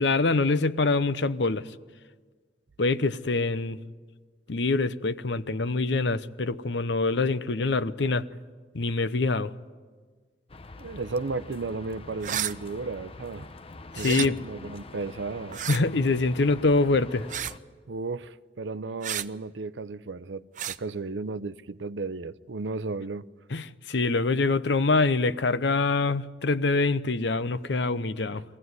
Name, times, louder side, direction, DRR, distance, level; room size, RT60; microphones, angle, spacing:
voice 1, 0.0-1.7 2.8-3.8 4.5-8.3 8.7-9.5 13.9-14.4 15.7-17.3 23.5-28.4, left 3 dB, 75° left, 0.8 m, -25 dB
sound 1, 10.5-17.6, left 2 dB, 35° left, 0.8 m, -45 dB
voice 2, 10.8-13.5 13.9-15.6 17.9-23.2, right 3 dB, 90° right, 0.6 m, -34 dB
sound 2, 12.2-12.5 13.9-14.3 15.5-15.8 17.3-17.6 19.0-19.3 20.6-20.8, right 10 dB, 45° right, 0.6 m, -31 dB
23.0 x 16.0 x 9.5 m
head